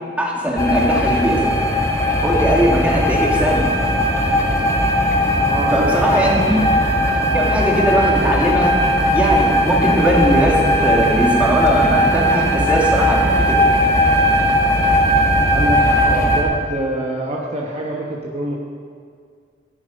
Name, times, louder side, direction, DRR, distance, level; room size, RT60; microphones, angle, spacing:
voice 1, 0.2-1.5 2.2-3.7 5.7-6.6 7.3-8.7 9.1-13.6, equal, 10° right, -3 dB, 2.2 m, -19 dB
sound 1, 0.6-16.4, equal, 20° left, 1.7 m, -17 dB
voice 2, 5.5-6.7 15.5-18.6, right 1 dB, 35° right, -2 dB, 1.2 m, -25 dB
15.0 x 10.0 x 5.3 m, 2.1 s
head